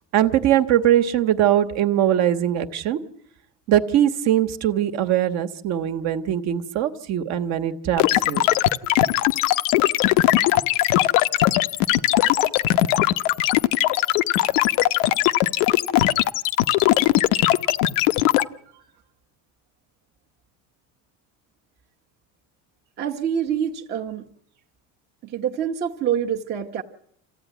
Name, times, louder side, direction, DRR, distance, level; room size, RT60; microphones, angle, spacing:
voice 1, 0.1-3.0 3.7-8.5, right 11 dB, 45° right, 8 dB, 1.3 m, -21 dB
sound 1, 8.0-18.4, left 15 dB, 90° left, 0.9 m, -19 dB
voice 2, 23.0-24.3 25.2-26.8, right 9 dB, 25° right, 0 dB, 1.0 m, -26 dB
27.5 x 15.5 x 9.3 m, 0.73 s
cardioid pair, 170°, 38 cm